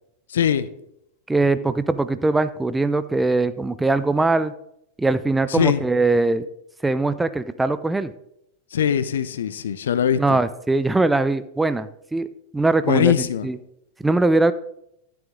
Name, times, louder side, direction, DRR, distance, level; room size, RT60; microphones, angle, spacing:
voice 1, 0.3-0.7 5.5-5.8 8.7-10.4 12.9-13.5, left 9 dB, 65° left, 14 dB, 0.6 m, -21 dB
voice 2, 1.3-4.5 5.0-6.5 6.8-8.1 10.2-13.1 13.4-13.6 14.0-14.5, right 2 dB, 5° right, 13 dB, 0.4 m, -21 dB
12.0 x 7.0 x 3.6 m, 0.77 s
figure-of-eight pair, 90°, 0 cm